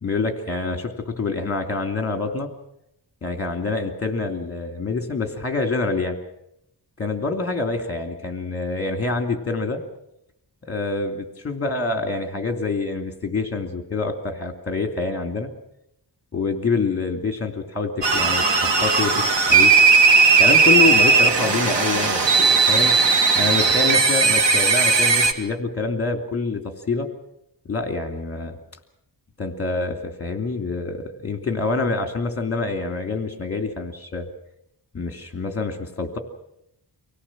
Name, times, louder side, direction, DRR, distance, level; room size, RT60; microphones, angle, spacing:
voice 1, 0.0-2.5 3.2-6.2 7.0-9.8 10.7-15.5 16.3-19.7 20.4-22.9 23.3-27.1 27.7-28.6 29.4-34.3 34.9-36.2, left 3 dB, 35° left, 6 dB, 2.8 m, -26 dB
sound 1, 18.0-25.3, right 4 dB, 85° right, 2.2 m, -17 dB
25.0 x 17.5 x 7.5 m, 0.81 s
wide cardioid pair, 125°, 42 cm